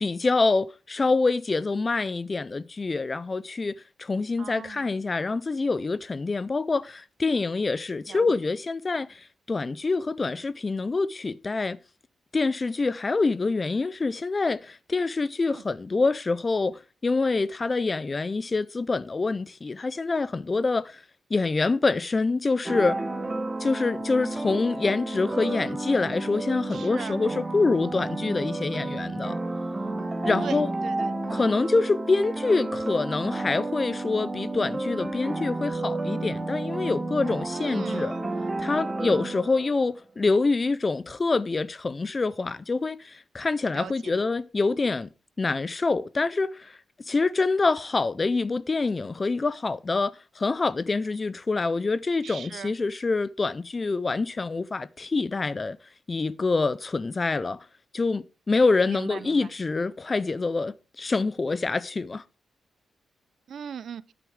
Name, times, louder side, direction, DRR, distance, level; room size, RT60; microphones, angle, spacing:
voice 1, 0.0-11.8 12.3-21.0 21.3-23.0 23.6-29.4 30.2-30.7 31.3-38.1 38.6-45.1 45.4-46.8 47.1-55.8 56.1-57.6 57.9-62.2, left 3 dB, 25° left, 0.4 m, -26 dB
voice 2, 4.4-4.8 8.1-8.2 15.5-15.6 26.7-27.2 30.4-31.1 37.5-38.3 43.7-44.1 52.2-52.7 58.9-59.5 63.5-64.1, right 8 dB, 60° right, 0.6 m, -39 dB
sound 1, 22.7-39.9, right 2 dB, 15° right, 1.1 m, -31 dB
11.5 x 9.3 x 3.2 m
wide cardioid pair, 175°, 0 cm